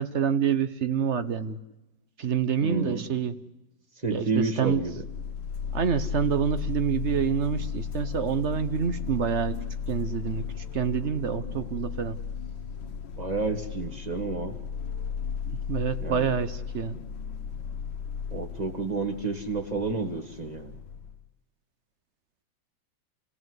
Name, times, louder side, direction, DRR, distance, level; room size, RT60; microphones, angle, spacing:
voice 1, 0.0-1.6 2.2-3.4 4.1-4.8 5.7-9.6 9.9-10.4 10.7-12.2 15.5-17.0, right 7 dB, 50° right, 0.9 m, -27 dB
voice 2, 2.6-3.0 4.0-5.0 13.2-14.6 16.0-16.3 18.3-20.7, right 4 dB, 20° right, 1.8 m, -30 dB
sound 1, 4.6-21.2, left 7 dB, 90° left, 2.1 m, -35 dB
28.5 x 17.0 x 7.9 m
omnidirectional pair, 2.1 m